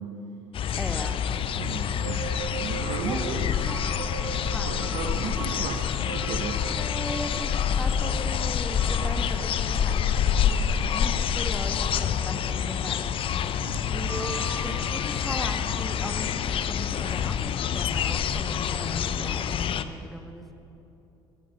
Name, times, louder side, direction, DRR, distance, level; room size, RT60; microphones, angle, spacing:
sound 1, 0.5-19.8, left 8 dB, 45° left, 0.6 m, -27 dB
voice 1, 0.8-1.2 3.0-3.8 4.5-4.9 6.6-10.6 10.9-13.2 13.9-20.5, equal, ahead, 4 dB, 1.7 m, -38 dB
sound 2, 1.4-13.3 13.9-16.5, right 8 dB, 85° right, 0.6 m, -42 dB
voice 2, 1.6-2.2 2.6-3.4 4.6-6.6 13.6-14.3, right 6 dB, 55° right, 3 dB, 1.3 m, -35 dB
15.0 x 12.0 x 5.6 m, 2.9 s
figure-of-eight pair, 55°, 13 cm